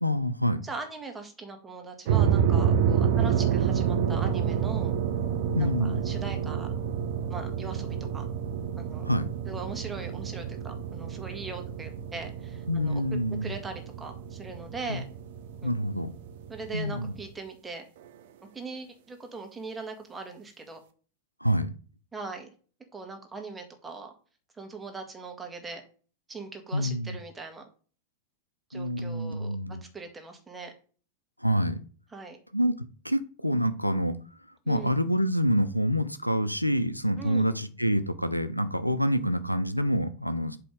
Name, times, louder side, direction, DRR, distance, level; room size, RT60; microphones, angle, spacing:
voice 1, 0.0-0.6 5.5-6.0 9.1-9.3 12.7-13.5 14.9-15.0 15.6-16.1 16.7-17.1 21.4-21.8 26.7-27.2 28.7-29.8 31.4-31.8 32.5-32.7 33.0-34.2 34.7-40.6, equal, 90° left, 0.6 m, -27 dB
voice 2, 0.6-4.9 5.6-6.7 7.3-8.3 8.8-9.1 9.5-13.0 13.4-15.0 15.6-15.7 16.5-17.8 18.5-20.8 22.1-22.5 22.9-24.1 24.5-25.8 26.3-27.6 28.7-29.6 29.9-30.7 32.1-32.4 34.7-35.0 37.2-37.5, right 3 dB, 10° right, 1.8 m, -40 dB
sound 1, 2.1-17.3, right 8 dB, 55° right, 0.9 m, -29 dB
7.7 x 3.4 x 5.3 m
figure-of-eight pair, 90°, 0 cm